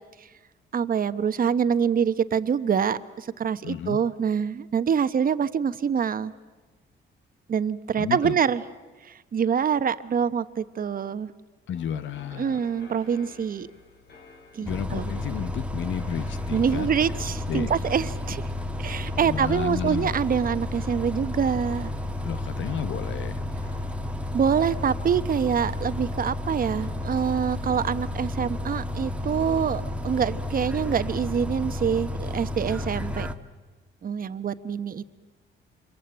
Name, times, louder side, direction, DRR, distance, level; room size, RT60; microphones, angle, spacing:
voice 1, 0.7-6.3 7.5-8.6 9.0-11.3 12.4-13.7 14.5-15.1 16.5-18.5 18.8-21.9 24.3-33.3 34.0-35.0, right 7 dB, 45° right, 13 dB, 1.0 m, -25 dB
voice 2, 3.6-4.0 8.0-8.4 11.7-12.6 14.6-16.9 17.5-17.9 19.1-20.1 22.2-23.5, left 9 dB, 75° left, 13 dB, 0.9 m, -32 dB
sound 1, 11.7-28.8, left 4 dB, 55° left, 3.6 m, -52 dB
Bus, 14.7-33.3, left 1 dB, 5° right, 1.3 m, -32 dB
27.5 x 22.5 x 8.9 m, 1.3 s
cardioid pair, 90°, 20 cm